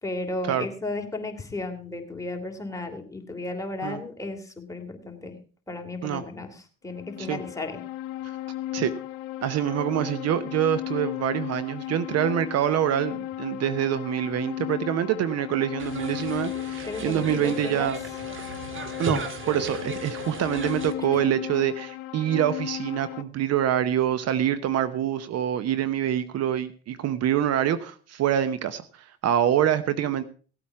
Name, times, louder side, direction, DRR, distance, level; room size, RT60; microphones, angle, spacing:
voice 1, 0.0-5.4 5.7-7.8 16.9-18.0 21.1-21.3, left 2 dB, 10° left, 2 dB, 2.9 m, -34 dB
sound 1, 6.9-23.2, left 14 dB, 80° left, 0.8 m, -35 dB
voice 2, 9.4-18.0 19.0-30.2, right 10 dB, 55° right, 14 dB, 0.9 m, -26 dB
sound 2, 15.8-20.9, right 3 dB, 40° right, 1.9 m, -36 dB
17.0 x 8.6 x 4.7 m, 0.38 s
hypercardioid pair, 70°, 30 cm